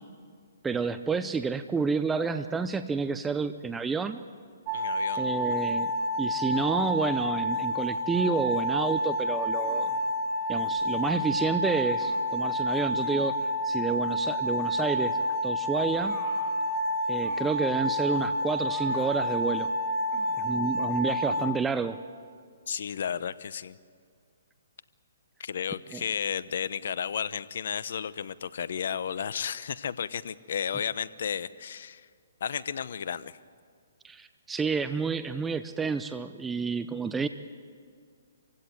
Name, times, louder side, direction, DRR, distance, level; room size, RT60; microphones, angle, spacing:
voice 1, 0.6-4.2 5.2-5.9 6.2-9.9 10.5-13.4 13.6-15.2 15.4-16.2 17.1-19.7 20.4-22.0 25.9-26.0 34.0-37.3, right 5 dB, 10° right, 10 dB, 0.7 m, -29 dB
voice 2, 4.7-5.3 22.7-23.8 25.4-32.1 32.4-33.4, left 7 dB, 65° left, 16 dB, 0.9 m, -33 dB
sound 1, 4.7-21.5, equal, 30° right, 1.8 m, -29 dB
sound 2, 9.6-10.0 10.8-11.0 12.0-12.3 13.0-13.3 14.9-15.2 15.9-16.5 17.2-17.7 18.6-19.2 20.1-20.4, left 2 dB, 15° left, 5.8 m, -48 dB
26.5 x 16.5 x 9.1 m, 2.1 s
hypercardioid pair, 145°, 0 cm